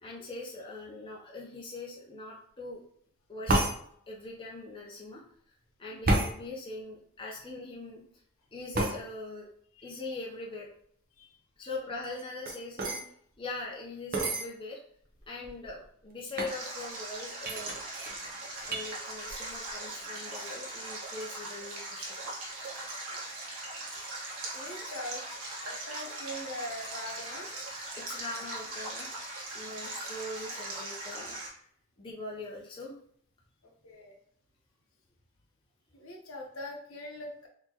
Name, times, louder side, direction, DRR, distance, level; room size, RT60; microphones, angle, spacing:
voice 1, 0.0-2.8 3.3-3.7 4.1-5.2 5.8-8.0 8.5-9.5 9.8-10.7 11.6-13.0 13.4-14.8 15.3-17.7 18.7-22.1 28.0-29.1 29.5-31.4 32.0-32.9, left 2 dB, 20° left, -3 dB, 0.6 m, -41 dB
sound 1, 3.5-3.8 6.0-6.3 8.7-9.0 12.0-13.0 14.1-14.5 15.2-15.3 15.4-15.8 16.4-16.6 17.4-18.9 19.3-19.7 20.0-20.4, right 1 dB, 40° right, 0.7 m, -30 dB
voice 2, 11.2-11.8 23.1-23.3 24.5-25.2 25.6-27.5 33.6-34.2 35.9-37.5, left 1 dB, 70° left, 1 dB, 0.9 m, -42 dB
Stream, 16.5-31.5, right 2 dB, 70° right, 1.2 m, -40 dB
4.1 x 2.9 x 2.8 m, 0.63 s
head